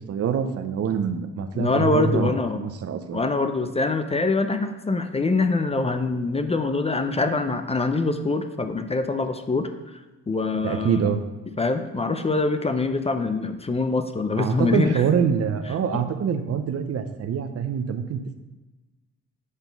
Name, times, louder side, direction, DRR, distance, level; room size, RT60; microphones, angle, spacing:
voice 1, 0.1-3.2 10.6-11.2 14.4-18.4, right 7 dB, 55° right, 8 dB, 0.7 m, -25 dB
voice 2, 1.5-2.6 3.1-10.0 10.3-11.1 11.6-15.0 15.9-16.0, left 3 dB, 20° left, 8 dB, 0.5 m, -24 dB
8.2 x 3.6 x 5.8 m, 1.1 s
cardioid pair, 90°, 30 cm